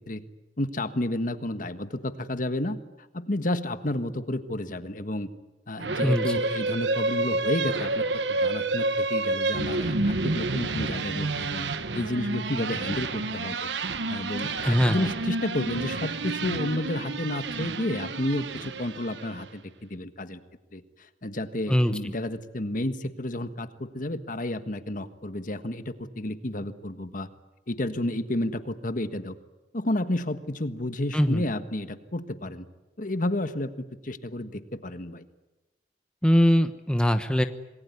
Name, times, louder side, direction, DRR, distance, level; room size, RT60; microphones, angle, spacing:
voice 1, 0.6-2.8 3.1-5.3 5.7-11.7 11.9-13.6 14.1-20.4 20.7-27.3 27.7-29.3 29.7-32.6 33.0-35.2, left 1 dB, 50° left, 10 dB, 1.5 m, -31 dB
sound 1, 5.8-19.4, right 3 dB, 75° right, 1.3 m, -29 dB
voice 2, 6.0-6.3 14.6-15.1 21.7-21.9 31.1-31.4 36.2-37.4, equal, 5° left, 8 dB, 1.0 m, -22 dB
27.0 x 20.0 x 9.8 m, 1.0 s
head